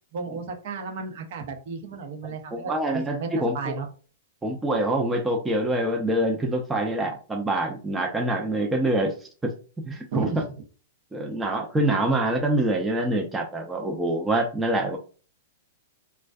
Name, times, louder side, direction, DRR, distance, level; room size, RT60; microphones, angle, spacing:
voice 1, 0.1-3.3 3.5-3.9 10.1-10.5, right 5 dB, 60° right, 4 dB, 0.7 m, -33 dB
voice 2, 2.2-3.7 4.4-9.1 9.8-10.3 11.1-15.0, right 1 dB, 10° right, 1 dB, 0.5 m, -25 dB
2.5 x 2.2 x 2.3 m, 0.38 s
hypercardioid pair, 125°, 0 cm